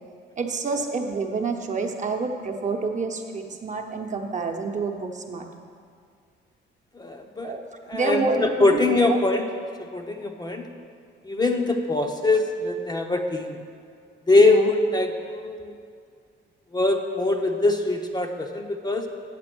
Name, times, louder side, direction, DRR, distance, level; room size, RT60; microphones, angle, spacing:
voice 1, 0.4-5.5 7.4-7.6 7.9-9.2 14.4-14.7, right 4 dB, 40° right, 3 dB, 1.0 m, -28 dB
voice 2, 7.0-7.6 7.9-9.4 9.8-10.7 11.2-13.6 14.3-15.7 16.7-19.0, left 2 dB, 20° left, 3 dB, 0.7 m, -22 dB
7.6 x 7.6 x 6.1 m, 2.2 s
cardioid pair, 90°, 20 cm